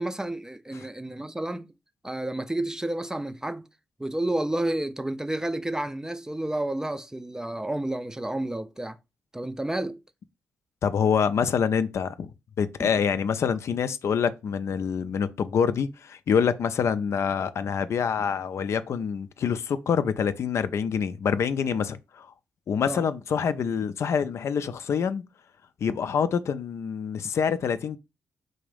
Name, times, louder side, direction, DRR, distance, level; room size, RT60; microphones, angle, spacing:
voice 1, 0.0-1.7 2.0-3.7 4.0-9.0 9.3-10.0 12.8-12.9 22.8-23.0, right 1 dB, 10° right, 0.4 m, -30 dB
voice 2, 10.8-12.3 12.6-22.3 22.7-25.2 25.8-28.0, left 7 dB, 60° left, 0.3 m, -26 dB
4.0 x 2.5 x 3.3 m
supercardioid pair, 45°, 5 cm